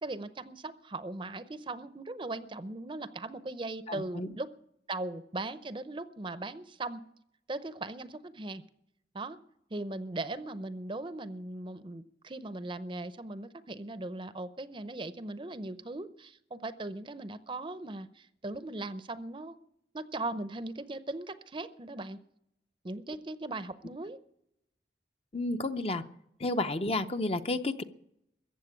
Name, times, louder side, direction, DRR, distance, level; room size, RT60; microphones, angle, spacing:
voice 1, 0.0-4.5 4.9-7.0 7.5-8.6 9.1-9.4 9.7-19.6 19.9-22.2 22.8-24.2, right 2 dB, 30° right, 13 dB, 0.6 m, -39 dB
voice 2, 3.9-4.3 25.3-26.0 26.4-27.8, left 2 dB, 35° left, 9 dB, 0.7 m, -31 dB
15.0 x 8.0 x 9.6 m, 0.76 s
head